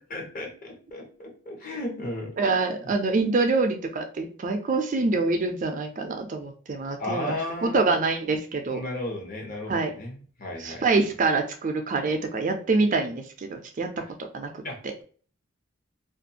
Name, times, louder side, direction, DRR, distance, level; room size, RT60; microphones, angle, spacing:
voice 1, 0.1-2.3 7.0-8.0 8.7-10.9 14.6-15.0, left 1 dB, 45° left, 0 dB, 0.9 m, -34 dB
voice 2, 2.4-8.8 9.7-9.9 10.6-13.9 14.3-14.9, right 3 dB, 40° right, 6 dB, 0.4 m, -26 dB
2.5 x 2.3 x 2.7 m, 0.42 s
head